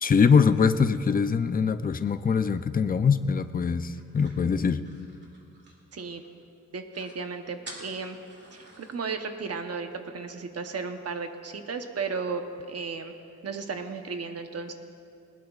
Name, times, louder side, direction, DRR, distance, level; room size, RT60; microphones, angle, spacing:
voice 1, 0.0-4.9, left 6 dB, 30° left, 11 dB, 0.4 m, -23 dB
sound 1, 3.9-6.3 6.6-6.7 6.9-7.2 7.6-9.0, right 1 dB, 35° right, 2.3 m, -48 dB
voice 2, 5.9-6.2 6.7-8.2 8.5-13.1 13.4-14.7, right 4 dB, 55° right, 6 dB, 0.9 m, -34 dB
20.0 x 19.5 x 2.4 m, 2.5 s
wide cardioid pair, 160°, 29 cm